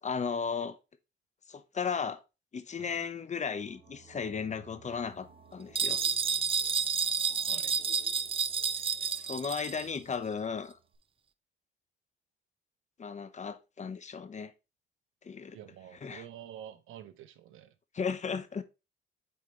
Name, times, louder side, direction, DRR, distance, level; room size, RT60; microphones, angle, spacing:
voice 1, 0.0-0.8 1.5-2.2 2.5-6.0 9.2-10.8 13.0-14.5 15.2-15.6 16.0-16.2 17.9-18.6, left 6 dB, 35° left, 0.9 m, -35 dB
sound 1, 3.4-11.0, right 6 dB, 65° right, 2.3 m, -57 dB
sound 2, 5.7-9.9, right 6 dB, 30° right, 0.4 m, -30 dB
voice 2, 7.3-7.8 8.8-9.2 15.5-17.7, right 10 dB, 85° right, 0.9 m, -49 dB
8.6 x 4.5 x 3.2 m
cardioid pair, 90°, 20 cm